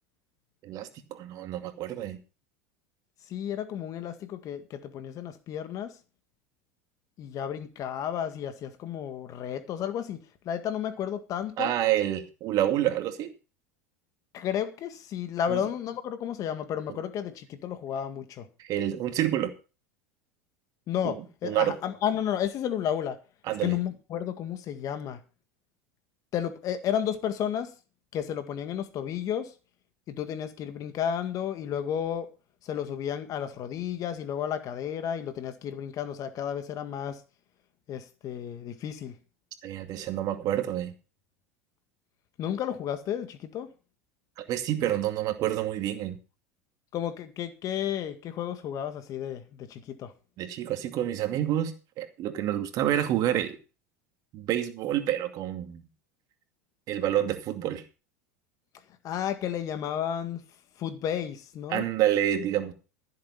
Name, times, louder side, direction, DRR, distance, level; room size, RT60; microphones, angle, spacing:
voice 1, 0.6-2.2 11.6-13.3 15.5-15.6 18.6-19.5 21.0-21.1 21.4-21.8 23.5-23.8 39.6-40.9 44.4-46.2 50.4-53.6 54.3-55.9 56.9-57.8 61.7-62.7, right 12 dB, 50° right, 2.4 m, -28 dB
voice 2, 3.3-6.0 7.2-11.7 14.3-18.5 20.9-23.2 23.6-25.2 26.3-27.7 28.1-29.5 30.1-32.3 32.6-37.2 37.9-39.2 42.4-43.7 46.9-50.1 59.0-60.4 60.8-61.9, left 9 dB, 45° left, 1.9 m, -32 dB
14.5 x 7.8 x 5.7 m
hypercardioid pair, 95°, 8 cm